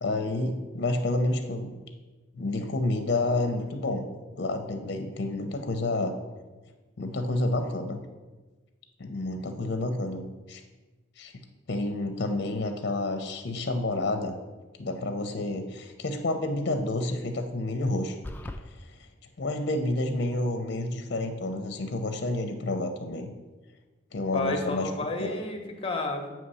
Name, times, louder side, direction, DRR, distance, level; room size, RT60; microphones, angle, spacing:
voice 1, 0.0-1.7 2.4-4.0 4.4-6.1 7.0-8.0 9.0-10.6 11.2-11.3 11.7-14.4 14.8-18.2 19.4-23.3 24.1-24.9 25.2-25.4, left 2 dB, 60° left, 6 dB, 0.6 m, -29 dB
sound 1, 18.2-18.6, left 1 dB, 10° left, 0.3 m, -37 dB
voice 2, 24.3-26.3, left 2 dB, 30° left, 3 dB, 0.8 m, -31 dB
8.0 x 3.1 x 5.5 m, 1.2 s
head